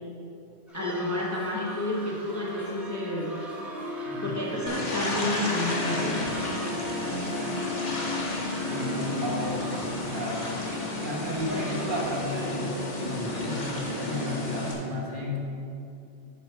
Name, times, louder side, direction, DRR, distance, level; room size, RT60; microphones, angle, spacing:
voice 1, 0.7-3.3 4.2-6.2, left 1 dB, 15° left, -4 dB, 0.9 m, -30 dB
sound 1, 0.7-12.3, right 1 dB, ahead, 1.4 m, -44 dB
Harp, 1.3-14.1, left 3 dB, 80° right, 1.9 m, -39 dB
sound 2, 4.7-14.7, left 1 dB, 45° left, 1.2 m, -32 dB
voice 2, 8.7-15.4, left 1 dB, 50° right, -3 dB, 1.4 m, -33 dB
8.4 x 4.5 x 5.6 m, 2.6 s
omnidirectional pair, 1.1 m